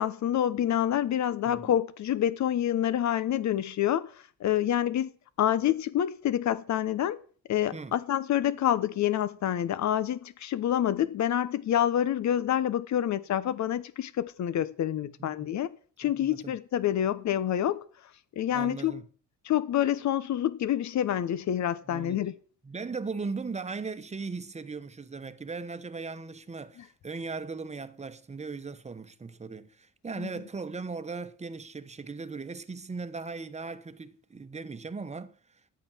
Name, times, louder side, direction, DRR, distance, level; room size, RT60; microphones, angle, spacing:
voice 1, 0.0-4.1 4.4-5.1 5.4-7.2 7.5-15.7 16.0-17.8 18.4-18.9 19.4-22.3 30.2-30.3, left 11 dB, 65° left, 1.1 m, -27 dB
voice 2, 15.0-15.6 16.0-16.6 18.5-19.1 21.9-22.3 22.6-35.4, right 4 dB, 20° right, 1.1 m, -38 dB
11.5 x 8.6 x 6.2 m
cardioid pair, 90°, 30 cm